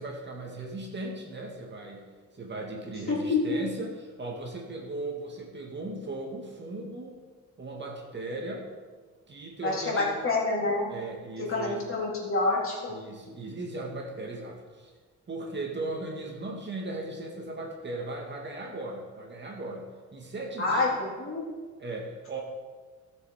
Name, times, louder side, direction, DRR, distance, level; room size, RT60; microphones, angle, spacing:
voice 1, 0.0-2.1 2.3-7.2 7.6-8.7 9.3-10.1 10.9-11.8 12.9-14.9 15.3-20.9 21.8-22.4, right 2 dB, 35° right, 0 dB, 2.1 m, -37 dB
voice 2, 3.1-3.6 9.6-10.9 11.5-12.9 20.6-21.5, left 3 dB, 45° left, -4 dB, 3.8 m, -27 dB
13.0 x 7.1 x 5.1 m, 1.4 s
cardioid pair, 90°, 30 cm